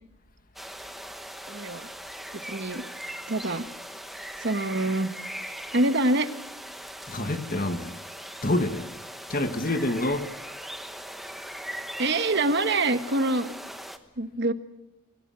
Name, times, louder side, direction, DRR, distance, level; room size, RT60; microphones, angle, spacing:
sound 1, 0.6-14.0, equal, ahead, 1.2 m, -40 dB
voice 1, 1.5-1.9 2.5-2.8 3.3-3.6 4.4-5.1 5.7-6.3 12.0-13.5 14.2-14.5, right 2 dB, 50° right, 1.5 m, -25 dB
voice 2, 7.1-7.9 8.4-8.9 9.3-10.3, left 1 dB, 40° left, 1.9 m, -27 dB
27.0 x 17.0 x 7.6 m
head